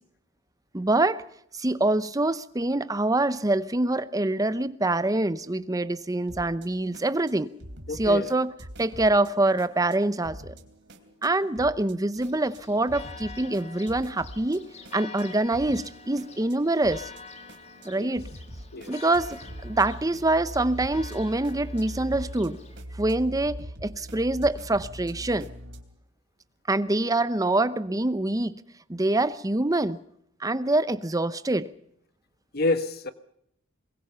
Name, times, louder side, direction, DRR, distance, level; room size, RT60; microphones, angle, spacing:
voice 1, 0.7-1.2 1.5-7.5 7.9-8.5 8.8-10.5 11.2-14.6 14.9-17.1 17.8-18.3 18.9-22.6 23.0-25.5 26.7-28.6 28.9-30.0 30.4-31.7, right 2 dB, 20° right, 0.7 m, -25 dB
sound 1, 6.2-25.8, right 1 dB, 60° right, 3.1 m, -43 dB
voice 2, 7.9-8.3 18.0-18.1 18.7-18.9 32.5-33.1, left 2 dB, 50° left, 1.3 m, -28 dB
Church bell, 12.1-22.8, left 4 dB, 35° left, 1.9 m, -47 dB
22.5 x 22.0 x 5.7 m
head